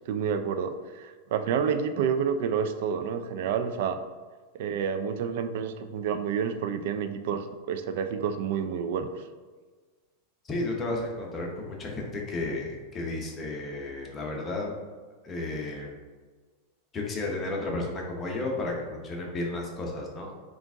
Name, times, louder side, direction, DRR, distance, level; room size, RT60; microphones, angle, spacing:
voice 1, 0.1-4.0 4.5-9.1, right 7 dB, 65° right, 8 dB, 0.3 m, -29 dB
voice 2, 10.4-14.8 15.2-15.9 16.9-20.3, left 2 dB, 25° left, -1 dB, 0.8 m, -33 dB
3.8 x 2.4 x 3.5 m, 1.4 s
supercardioid pair, 130°, 0 cm